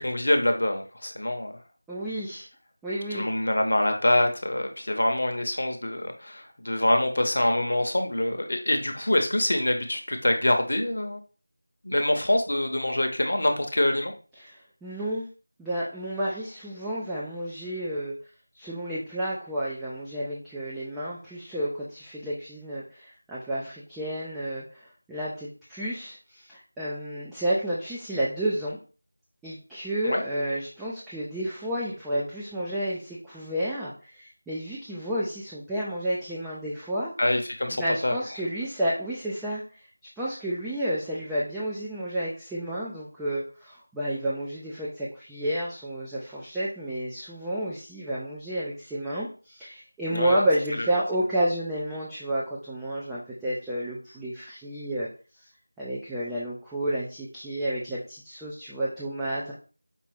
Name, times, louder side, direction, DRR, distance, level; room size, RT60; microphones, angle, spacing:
voice 1, 0.0-1.6 3.1-11.2 11.8-14.1 30.0-30.2 37.2-38.2 50.1-50.4, left 1 dB, 55° left, 4 dB, 0.8 m, -25 dB
voice 2, 1.9-2.5 2.8-3.3 14.4-15.3 15.6-18.1 18.5-28.8 29.4-37.1 37.7-39.8 40.2-55.1 55.4-55.5 55.8-59.5, right 1 dB, 5° right, -9 dB, 0.3 m, -31 dB
5.3 x 2.4 x 3.4 m, 0.37 s
figure-of-eight pair, 170°, 0 cm